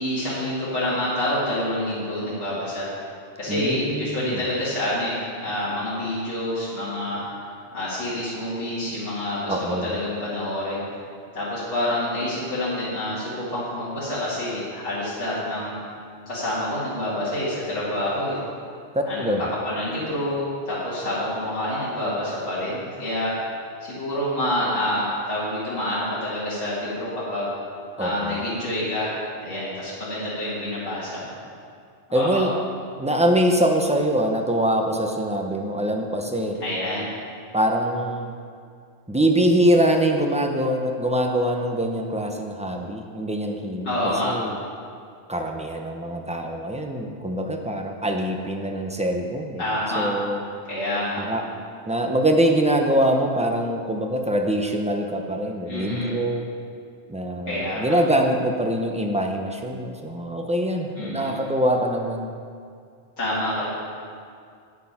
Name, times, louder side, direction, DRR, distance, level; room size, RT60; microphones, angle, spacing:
voice 1, 0.0-2.9 3.4-7.2 7.7-10.8 11.3-15.8 16.3-18.4 19.0-19.3 19.7-23.3 23.8-27.5 28.0-29.1 29.4-31.3 32.1-32.5 36.6-37.0 43.8-44.3 49.6-50.1 50.7-51.2 55.7-56.1 57.5-58.0 61.0-61.3 63.2-63.7, left 1 dB, 80° left, -10 dB, 2.5 m, -27 dB
voice 2, 3.5-4.4 9.5-9.9 18.9-19.5 28.0-28.4 32.1-32.5 33.0-36.6 37.5-38.3 39.1-44.5 45.3-49.6 50.0-50.4 51.2-51.4 51.9-56.5 57.1-62.3, right 1 dB, 5° right, 2 dB, 0.6 m, -23 dB
8.5 x 8.3 x 5.8 m, 2.3 s
omnidirectional pair, 1.2 m